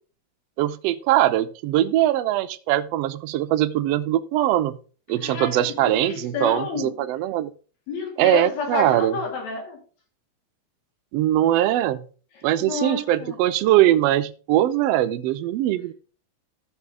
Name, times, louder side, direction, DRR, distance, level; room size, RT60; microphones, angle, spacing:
voice 1, 0.6-4.7 5.1-7.5 8.2-9.2 11.1-12.0 12.4-15.9, right 13 dB, 80° right, 1.5 m, -21 dB
voice 2, 5.2-6.9 7.9-9.8 12.6-13.4, left 4 dB, 65° left, 3.7 m, -30 dB
14.0 x 5.6 x 3.6 m
omnidirectional pair, 3.4 m